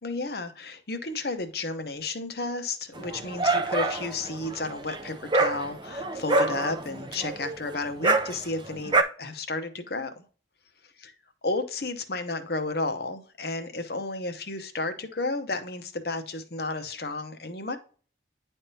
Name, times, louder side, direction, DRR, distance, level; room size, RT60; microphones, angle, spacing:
voice 1, 0.0-10.2 11.4-17.8, left 3 dB, 55° left, 8 dB, 0.9 m, -32 dB
Dog, 3.0-9.0, right 2 dB, 25° right, 0.5 m, -27 dB
10.0 x 3.6 x 2.7 m, 0.40 s
head